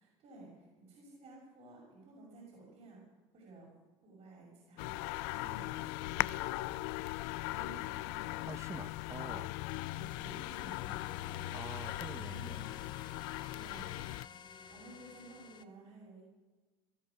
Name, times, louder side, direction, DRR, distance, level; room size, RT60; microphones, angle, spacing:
voice 1, 0.0-3.0 3.3-3.7 4.0-7.0 7.5-8.3 9.9-12.7 13.5-14.2 14.7-16.2, right 2 dB, 60° right, 5.9 m, -55 dB
sound 1, 4.8-14.3, left 19 dB, 80° left, 0.4 m, -39 dB
voice 2, 8.5-9.5 11.5-12.6, right 4 dB, 20° right, 1.1 m, -47 dB
sound 2, 9.7-15.6, left 7 dB, 35° left, 1.0 m, -52 dB
19.0 x 12.0 x 6.2 m
supercardioid pair, 80°, 13 cm